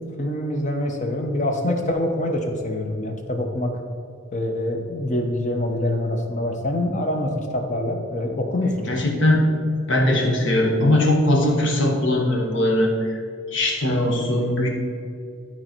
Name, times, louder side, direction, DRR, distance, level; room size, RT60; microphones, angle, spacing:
voice 1, 0.0-3.7 4.3-8.9, left 1 dB, 35° left, 3 dB, 0.9 m, -25 dB
voice 2, 8.9-9.4 9.9-13.2 13.5-14.7, left 1 dB, 60° left, 0 dB, 1.5 m, -20 dB
11.5 x 4.4 x 4.5 m, 2.3 s
head